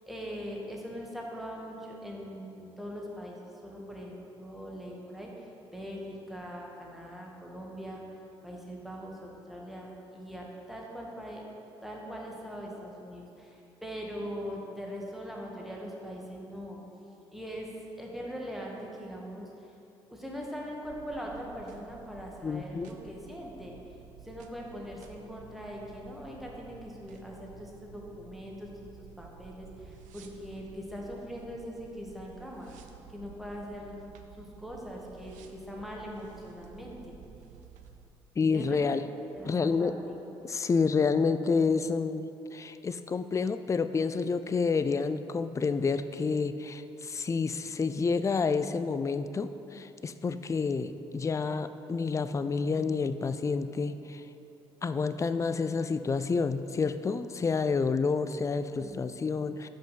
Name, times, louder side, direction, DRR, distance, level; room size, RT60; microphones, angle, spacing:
voice 1, 0.0-8.0 8.4-11.4 11.8-16.8 17.3-17.7 18.0-19.7 20.1-23.8 24.2-28.7 29.2-32.7 33.1-34.0 34.4-37.1 38.5-38.8 39.3-40.2 58.8-59.0, equal, ahead, -2 dB, 1.5 m, -41 dB
sound 1, 20.8-38.1, right 7 dB, 70° right, 0.5 m, -53 dB
voice 2, 22.4-22.9 38.4-39.0 39.4-40.0 40.4-54.2 54.8-59.7, left 4 dB, 25° left, 12 dB, 0.3 m, -29 dB
5.3 x 5.2 x 5.8 m, 2.8 s
hypercardioid pair, 45°, 13 cm